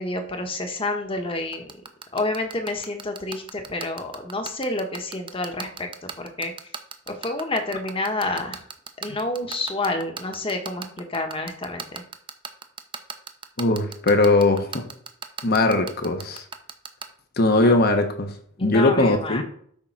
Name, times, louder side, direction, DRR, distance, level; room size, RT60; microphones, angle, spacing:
voice 1, 0.0-1.7 2.1-6.5 7.1-8.6 9.0-12.0 18.6-19.4, left 2 dB, 25° left, 5 dB, 1.2 m, -29 dB
sound 1, 1.5-17.0, right 6 dB, 25° right, 0.6 m, -34 dB
voice 2, 13.6-14.9 15.4-16.4 17.4-18.3 18.6-19.4, left 2 dB, 50° left, 6 dB, 1.2 m, -20 dB
8.5 x 3.7 x 5.9 m, 0.62 s
head